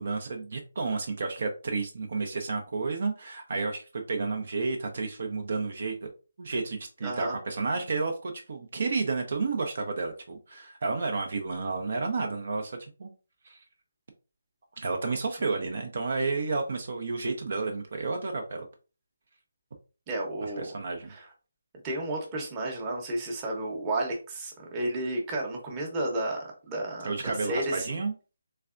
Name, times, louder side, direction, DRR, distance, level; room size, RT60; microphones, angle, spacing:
voice 1, 0.0-6.1 6.4-13.1 13.4-13.6 14.8-18.7 20.4-21.1 27.0-28.1, right 4 dB, 55° right, 3 dB, 0.6 m, -31 dB
voice 2, 7.0-7.4 20.1-20.7 21.1-21.3 21.8-28.0, right 1 dB, 20° right, -1 dB, 0.9 m, -32 dB
3.3 x 3.3 x 2.5 m, 0.34 s
figure-of-eight pair, 165°, 0 cm